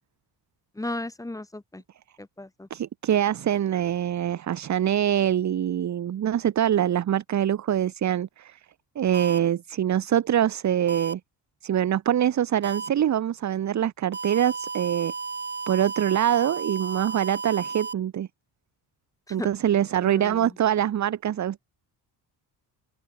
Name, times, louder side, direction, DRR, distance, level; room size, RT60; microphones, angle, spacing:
voice 1, 0.8-1.8 2.2-2.7 19.3-19.5 20.0-20.6, left 2 dB, 10° left, 2.2 m, -35 dB
voice 2, 2.7-8.6 9.0-11.2 11.6-15.1 15.7-18.3 19.3-21.6, right 10 dB, 40° right, 1.0 m, -24 dB
sound 1, 9.1-9.4 10.9-11.1 12.6-12.9 14.1-17.9, right 5 dB, 25° right, 5.0 m, -33 dB
cardioid pair, 170°, 42 cm